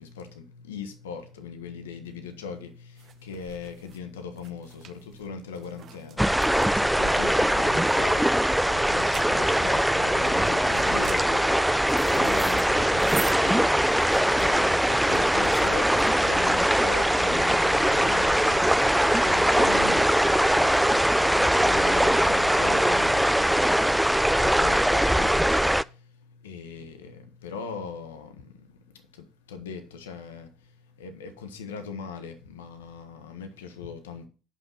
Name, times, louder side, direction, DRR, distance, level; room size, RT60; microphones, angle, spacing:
voice 1, 0.0-34.3, left 5 dB, 85° left, 1.4 m, -40 dB
sound 1, 2.1-16.5, right 9 dB, 50° right, 0.9 m, -45 dB
sound 2, 6.2-25.8, equal, 5° right, 0.4 m, -22 dB
8.1 x 5.8 x 5.8 m
hypercardioid pair, 65°, 0 cm